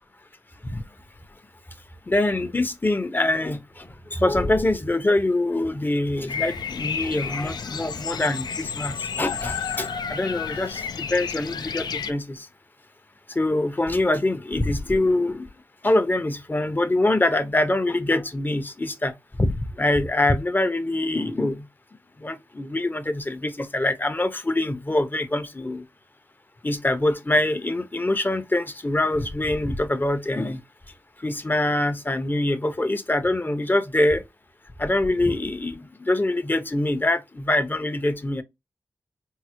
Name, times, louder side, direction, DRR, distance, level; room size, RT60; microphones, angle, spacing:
voice 1, 2.1-12.5 13.3-15.5 15.8-19.1 19.4-21.7 22.2-25.9 26.6-30.6 31.2-34.2 34.8-38.4, left 2 dB, 25° left, 0.7 m, -24 dB
Bird vocalization bird call bird song, 6.3-12.1, left 6 dB, 75° left, 0.4 m, -31 dB
4.6 x 2.0 x 2.9 m
cardioid pair, 45°, 7 cm